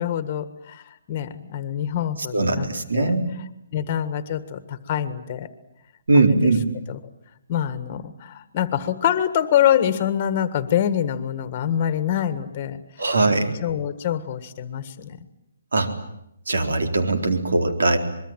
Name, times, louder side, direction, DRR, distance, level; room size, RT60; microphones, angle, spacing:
voice 1, 0.0-2.7 2.9-3.2 3.7-5.5 6.1-6.5 6.9-7.0 7.5-15.3, left 10 dB, 25° left, 12 dB, 1.5 m, -25 dB
voice 2, 2.3-3.3 6.1-6.6 13.0-13.5 15.7-15.9 16.5-18.0, right 3 dB, 85° right, 6 dB, 4.1 m, -20 dB
25.5 x 22.5 x 9.1 m, 0.79 s
hypercardioid pair, 175°, 0 cm